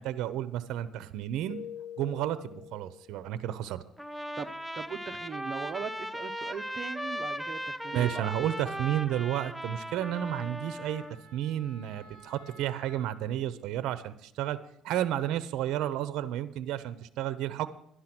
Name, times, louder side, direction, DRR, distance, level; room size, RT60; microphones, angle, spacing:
voice 1, 0.0-1.6 2.0-3.8 7.9-11.0 11.3-14.6 14.8-17.7, right 12 dB, 75° right, 14 dB, 0.8 m, -32 dB
Keyboard (musical), 1.5-3.5, left 10 dB, 85° left, 0.4 m, -45 dB
Trumpet, 4.0-11.1, equal, ahead, 0.6 m, -38 dB
voice 2, 4.4-8.3, right 6 dB, 40° right, 9 dB, 1.0 m, -39 dB
Wind instrument woodwind instrument, 7.9-13.1, right 1 dB, 45° left, 3.0 m, -57 dB
11.5 x 11.5 x 6.1 m, 0.73 s
cardioid pair, 120°, 0 cm